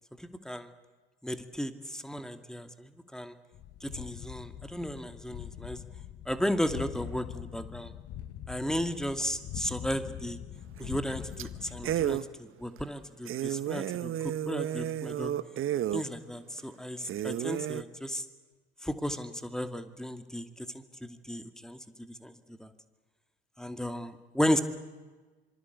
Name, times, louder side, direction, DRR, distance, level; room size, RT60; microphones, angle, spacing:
voice 1, 0.2-0.7 1.2-3.3 3.8-5.8 6.3-7.9 8.5-10.4 10.8-15.3 15.9-18.2 18.8-22.7 23.6-24.6, equal, ahead, 9 dB, 2.3 m, -34 dB
sound 1, 3.5-12.2, left 10 dB, 50° left, 1.7 m, -43 dB
sound 2, 10.8-11.1 11.4-11.5 11.8-12.3 12.8-12.9 13.2-16.0 16.6-16.7 17.0-17.8, right 11 dB, 40° right, 1.2 m, -32 dB
26.0 x 25.5 x 8.3 m, 1.3 s
figure-of-eight pair, 65°, 31 cm